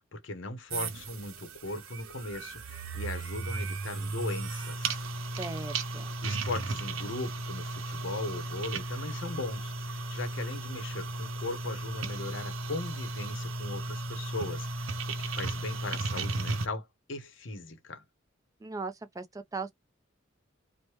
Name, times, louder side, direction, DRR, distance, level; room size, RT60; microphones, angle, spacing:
voice 1, 0.0-5.0 6.2-18.0, left 2 dB, 65° left, 0.7 m, -38 dB
sound 1, 0.7-16.7, right 3 dB, 90° right, 0.6 m, -35 dB
voice 2, 5.4-6.1 18.6-19.7, right 3 dB, 15° right, 0.4 m, -38 dB
3.1 x 2.1 x 2.9 m
head